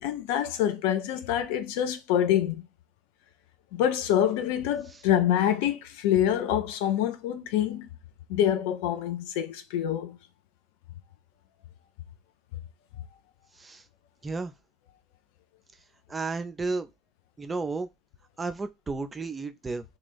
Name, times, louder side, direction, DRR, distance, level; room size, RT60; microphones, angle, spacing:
voice 1, 0.0-2.6 3.7-7.9 8.3-10.2, left 10 dB, 60° left, 0.4 m, -26 dB
voice 2, 16.1-16.9 17.4-17.9 18.4-19.8, right 3 dB, 20° right, 0.4 m, -32 dB
2.4 x 2.3 x 3.4 m
figure-of-eight pair, 70°, 0 cm